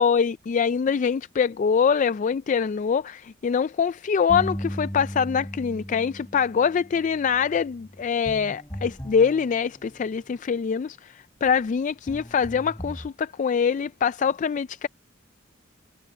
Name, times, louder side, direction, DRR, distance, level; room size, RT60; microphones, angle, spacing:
voice 1, 0.0-14.9, left 6 dB, 40° left, 0.3 m, -24 dB
sound 1, 4.3-10.2 11.4-11.6 12.1-13.1, equal, 15° left, 3.7 m, -37 dB
head